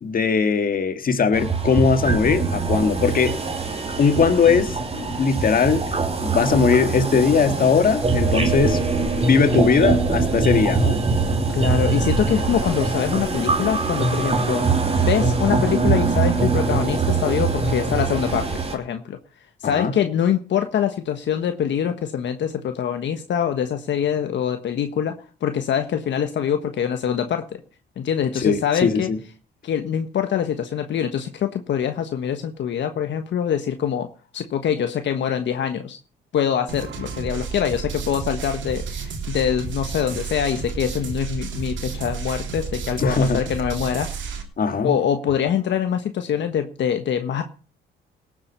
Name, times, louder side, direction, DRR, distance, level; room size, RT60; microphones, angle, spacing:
voice 1, 0.0-3.4 4.0-5.8 6.2-8.8 9.1-11.0 19.6-19.9 28.4-29.2 43.0-43.5 44.6-45.0, left 5 dB, 45° left, 8 dB, 1.9 m, -20 dB
sound 1, 1.3-18.8, right 4 dB, 30° right, 3.0 m, -22 dB
voice 2, 11.5-14.6 15.0-19.2 19.6-25.1 25.4-27.6 28.0-29.1 29.6-34.1 34.3-36.0 36.3-44.3 44.8-47.4, left 8 dB, 65° left, 7 dB, 1.4 m, -24 dB
sound 2, 36.7-44.4, right 5 dB, 70° right, 3.2 m, -31 dB
18.5 x 7.7 x 5.6 m, 0.37 s
cardioid pair, 90°, 20 cm